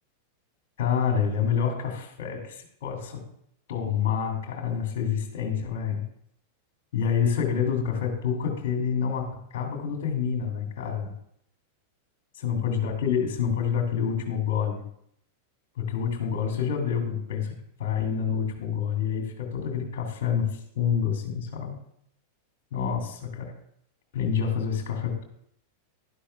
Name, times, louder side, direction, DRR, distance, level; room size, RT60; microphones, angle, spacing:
voice 1, 0.8-3.2 3.7-6.0 6.9-9.3 9.5-11.1 12.4-14.8 15.8-17.5 17.8-21.8 22.7-23.5 24.1-25.2, left 7 dB, 50° left, 2 dB, 2.4 m, -27 dB
11.5 x 11.5 x 2.3 m, 0.70 s
figure-of-eight pair, 90°, 0 cm